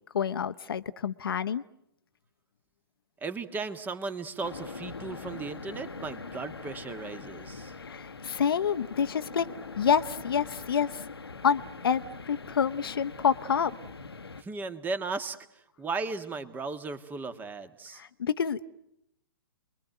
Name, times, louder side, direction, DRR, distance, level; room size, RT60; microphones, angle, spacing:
voice 1, 0.1-1.6 7.8-9.5 9.8-11.0 11.4-13.8 18.0-18.7, left 7 dB, 70° left, 10 dB, 1.0 m, -28 dB
voice 2, 3.2-7.7 14.4-18.0, right 4 dB, 15° right, 11 dB, 1.8 m, -36 dB
sound 1, 4.4-14.4, left 4 dB, 85° left, 1.3 m, -43 dB
29.5 x 22.0 x 9.1 m, 0.83 s
figure-of-eight pair, 120°, 13 cm